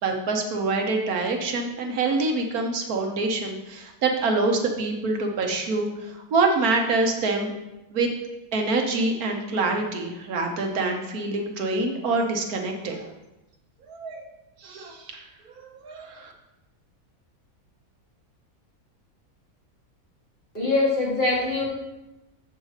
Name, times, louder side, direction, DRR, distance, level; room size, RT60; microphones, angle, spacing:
voice 1, 0.0-7.5 7.9-8.1 8.5-13.1 13.9-14.2 14.6-16.3, right 3 dB, 75° right, 2 dB, 1.5 m, -26 dB
voice 2, 20.5-21.6, left 2 dB, 40° left, -6 dB, 2.7 m, -23 dB
7.6 x 5.4 x 4.9 m, 0.97 s
omnidirectional pair, 1.6 m